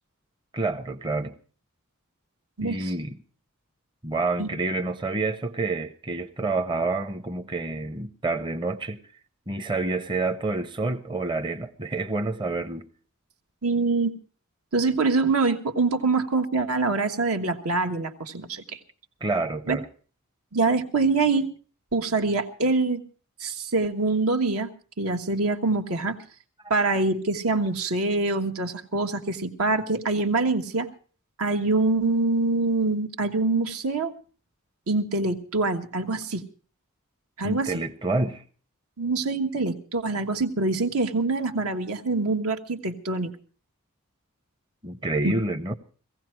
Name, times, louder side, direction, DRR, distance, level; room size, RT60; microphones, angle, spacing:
voice 1, 0.5-1.3 2.6-3.2 4.0-9.0 9.5-12.8 19.2-19.9 37.4-38.4 44.8-45.7, right 3 dB, 20° right, 0.7 m, -28 dB
voice 2, 2.6-2.9 4.4-4.5 13.6-14.1 14.7-18.8 19.7-19.8 20.5-21.5 21.9-23.0 23.4-24.7 25.0-26.2 26.7-30.9 31.4-34.1 34.9-36.4 37.4-37.7 39.0-43.3 45.2-45.3, right 3 dB, 80° right, 1.4 m, -25 dB
18.0 x 15.5 x 4.5 m
head